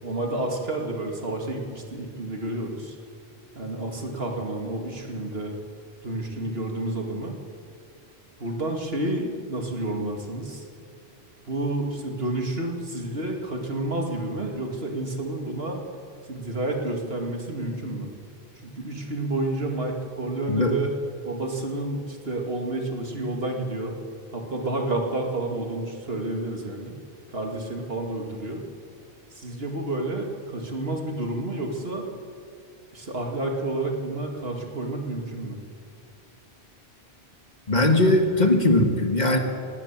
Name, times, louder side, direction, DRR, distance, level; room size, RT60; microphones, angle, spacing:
voice 1, 0.0-3.0 3.6-5.6 6.0-7.4 8.4-10.7 11.4-15.8 16.3-18.1 18.6-20.9 21.2-24.0 24.3-26.9 27.3-28.6 29.3-32.1 32.9-35.6, right 2 dB, 65° right, 2 dB, 2.6 m, -30 dB
voice 2, 37.7-39.4, left 1 dB, 45° left, 4 dB, 1.9 m, -20 dB
19.0 x 18.5 x 7.4 m, 2.4 s
omnidirectional pair, 1.1 m